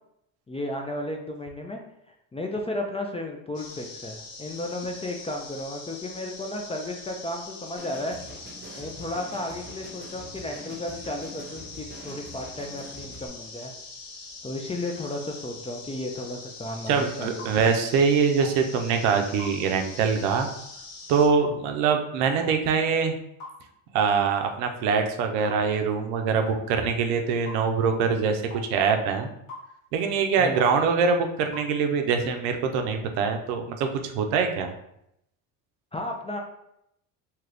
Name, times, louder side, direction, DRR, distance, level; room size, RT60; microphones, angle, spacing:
voice 1, 0.5-1.8 2.1-8.1 8.8-13.7 14.4-17.4 21.5-21.6 30.4-30.6 35.9-36.4, left 1 dB, 15° left, 2 dB, 0.3 m, -34 dB
sound 1, 3.5-21.3, left 3 dB, 65° left, 1.0 m, -43 dB
sound 2, 7.8-13.3, right 2 dB, 20° right, 0.8 m, -45 dB
voice 2, 16.9-20.5 21.1-23.2 23.9-29.3 29.9-34.7, right 5 dB, 80° right, 5 dB, 0.6 m, -24 dB
sound 3, 17.4-17.6 18.4-18.6 19.4-19.6 20.4-20.6 21.4-21.6 22.4-22.6 23.4-23.6 24.4-24.6 25.4-25.6 26.5-26.6 27.5-27.6 28.5-28.7 29.5-29.7 30.5-30.7 31.5-31.7, left 1 dB, 85° left, 1.2 m, -41 dB
2.9 x 2.4 x 3.3 m, 0.78 s
hypercardioid pair, 65°, 47 cm